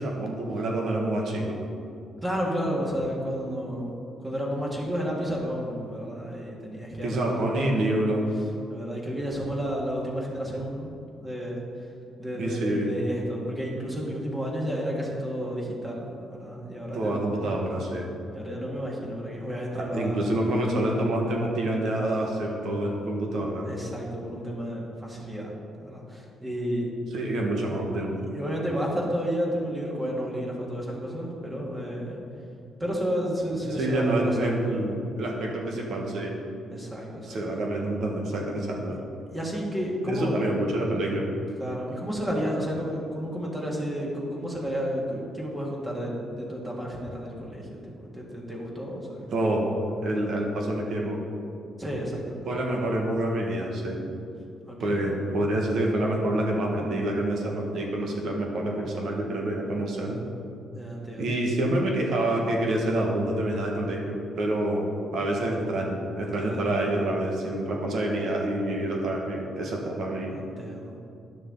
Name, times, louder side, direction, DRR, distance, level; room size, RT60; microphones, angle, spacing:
voice 1, 0.0-1.6 7.0-8.3 12.3-12.9 16.9-18.1 19.7-23.7 27.1-28.1 33.7-36.3 37.3-39.0 40.1-41.3 49.3-49.7 50.0-51.2 52.5-54.1 54.8-60.2 61.2-70.3, right 1 dB, 70° right, 0 dB, 1.5 m, -27 dB
voice 2, 2.2-7.5 8.7-10.9 11.2-11.6 12.2-17.4 18.3-20.2 23.6-25.5 25.8-26.9 28.3-32.2 32.8-34.7 36.7-37.4 39.3-40.3 41.6-49.3 51.8-52.5 54.7-55.2 60.7-61.4 66.4-66.8 70.3-71.0, equal, 15° right, -3 dB, 1.8 m, -31 dB
10.5 x 6.4 x 3.9 m, 2.6 s
cardioid pair, 90°, 0 cm